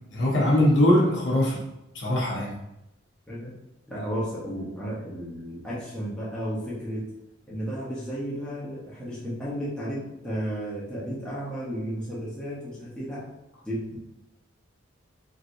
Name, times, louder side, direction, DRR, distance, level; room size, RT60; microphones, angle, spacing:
voice 1, 0.1-1.6 1.9-2.5, left 1 dB, 65° left, -4 dB, 0.9 m, -21 dB
voice 2, 3.9-7.1 7.5-13.3 13.6-14.0, equal, 5° left, -8 dB, 0.9 m, -33 dB
3.1 x 2.8 x 2.6 m, 0.90 s
head